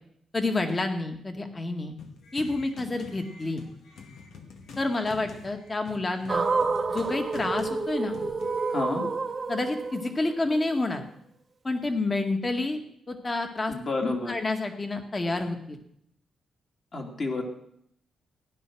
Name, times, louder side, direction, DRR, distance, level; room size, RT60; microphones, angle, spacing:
voice 1, 0.3-1.9 2.3-3.6 4.8-6.5 6.9-8.2 9.5-11.0 11.6-12.8 13.1-13.7 14.0-15.8, left 2 dB, 25° left, 5 dB, 2.0 m, -29 dB
sound 1, 2.0-8.7, left 4 dB, 85° left, 2.2 m, -46 dB
sound 2, 6.3-10.5, right 4 dB, 30° right, 1.1 m, -29 dB
voice 2, 8.7-9.1 13.7-14.3 16.9-17.4, left 3 dB, 40° left, 0 dB, 2.9 m, -30 dB
16.5 x 10.5 x 6.3 m, 0.71 s
cardioid pair, 115°, 0 cm